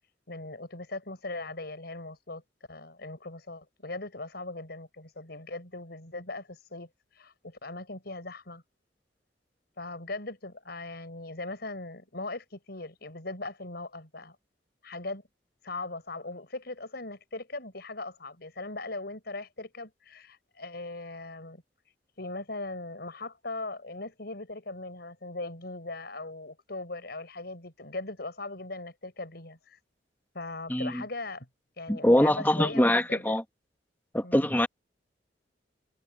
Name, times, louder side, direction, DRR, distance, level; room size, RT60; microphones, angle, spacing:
voice 1, 0.3-2.4 2.7-8.6 9.8-14.4 14.8-15.2 15.6-29.8 30.3-31.5 31.8-33.4 34.2-34.5, left 2 dB, 60° left, 6.1 m, -39 dB
voice 2, 30.7-31.0 31.9-33.4 34.1-34.7, left 1 dB, 10° left, 2.3 m, -23 dB
head